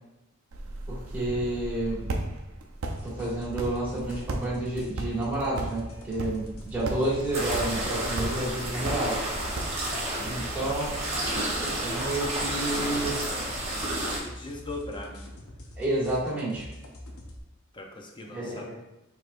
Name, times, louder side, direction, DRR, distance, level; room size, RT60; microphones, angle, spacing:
sound 1, 0.5-10.1, right 2 dB, 75° right, 0.5 m, -37 dB
voice 1, 0.9-2.1 3.0-9.2 10.2-11.1 11.6-13.2 15.8-16.7 18.3-18.7, right 1 dB, 10° right, -9 dB, 1.5 m, -30 dB
sound 2, 3.0-17.4, left 1 dB, 80° left, 0.7 m, -44 dB
voice 2, 7.0-7.5 14.2-15.2 17.7-18.7, left 2 dB, 20° left, 1 dB, 0.5 m, -40 dB
sound 3, 7.3-14.2, right 1 dB, 30° right, 1.0 m, -31 dB
4.7 x 3.3 x 2.5 m, 0.95 s
head